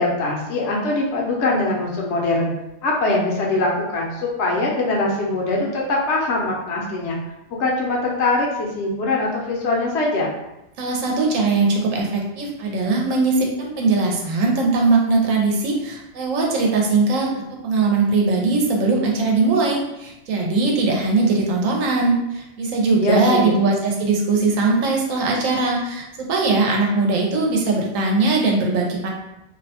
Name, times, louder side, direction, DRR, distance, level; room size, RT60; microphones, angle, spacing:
voice 1, 0.0-2.5 2.8-7.2 7.6-10.3 23.0-23.6, left 2 dB, 65° left, -2 dB, 0.8 m, -22 dB
voice 2, 10.8-29.1, right 3 dB, 90° right, -1 dB, 1.0 m, -20 dB
2.6 x 2.1 x 2.7 m, 0.90 s
omnidirectional pair, 1.3 m